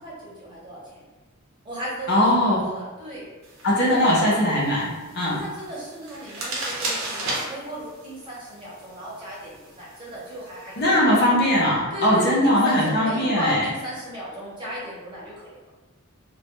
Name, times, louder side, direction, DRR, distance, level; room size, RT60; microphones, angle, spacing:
voice 1, 0.0-1.1 1.6-3.3 3.8-4.4 5.3-11.2 11.9-15.7, equal, 25° right, -8 dB, 0.8 m, -36 dB
voice 2, 2.1-2.6 3.6-5.4 10.8-13.6, left 1 dB, 55° left, -5 dB, 0.7 m, -20 dB
sound 1, 3.4-10.8, right 2 dB, 70° right, 0.6 m, -36 dB
2.3 x 2.2 x 2.8 m, 1.2 s
head